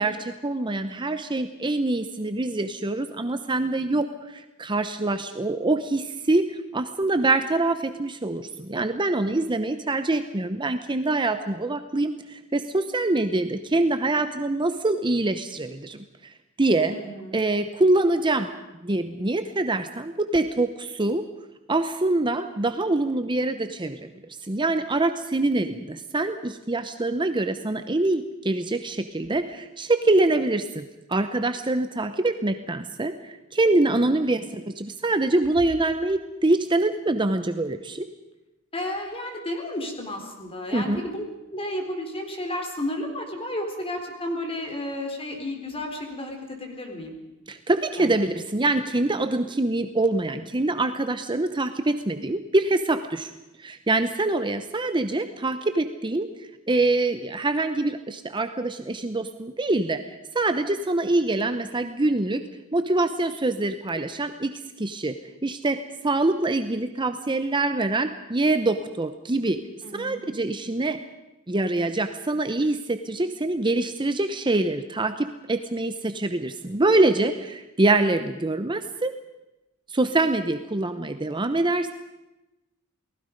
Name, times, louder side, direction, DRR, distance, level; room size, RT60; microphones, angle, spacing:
voice 1, 0.0-16.9 17.3-18.5 18.8-21.2 21.7-24.1 24.4-30.8 31.1-38.1 40.7-41.0 47.5-53.3 53.6-62.4 62.7-65.1 65.4-69.6 69.9-71.0 71.5-79.1 79.9-81.9, right 2 dB, 20° right, 9 dB, 0.8 m, -25 dB
voice 2, 16.9-17.4 34.0-34.3 38.7-47.1 47.9-48.1 48.8-48.9 69.8-70.2, left 1 dB, 25° left, 3 dB, 3.9 m, -32 dB
29.0 x 19.0 x 5.3 m, 0.99 s
head